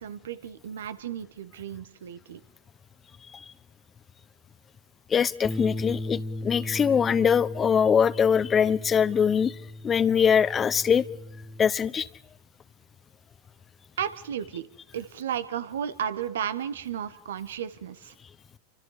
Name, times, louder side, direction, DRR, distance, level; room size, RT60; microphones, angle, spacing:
voice 1, 0.0-2.4 14.0-14.7 14.9-18.1, right 9 dB, 80° right, 1.5 m, -33 dB
voice 2, 5.1-9.5 9.8-11.0 11.6-12.1, left 7 dB, 25° left, 1.0 m, -22 dB
Bass guitar, 5.4-11.7, left 1 dB, 5° left, 1.3 m, -37 dB
30.0 x 24.5 x 5.0 m
hypercardioid pair, 95°, 0 cm